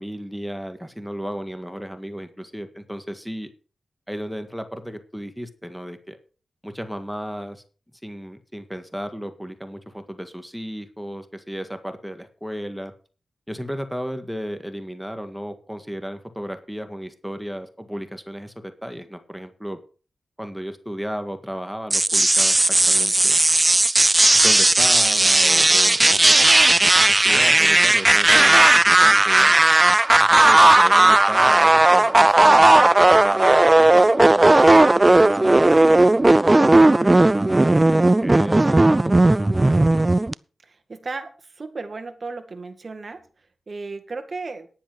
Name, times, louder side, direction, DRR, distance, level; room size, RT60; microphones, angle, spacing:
voice 1, 0.0-3.5 4.1-6.2 6.6-7.6 8.0-12.9 13.5-19.8 20.4-23.4 24.3-26.4 26.7-28.7 29.0-29.6 30.2-37.2 37.9-40.1, equal, ahead, 8 dB, 1.7 m, -34 dB
sound 1, 21.9-40.3, right 2 dB, 25° right, 0.4 m, -15 dB
voice 2, 40.6-44.7, right 3 dB, 50° right, 7 dB, 2.2 m, -35 dB
10.5 x 9.9 x 4.7 m, 0.37 s
cardioid pair, 50°, 0 cm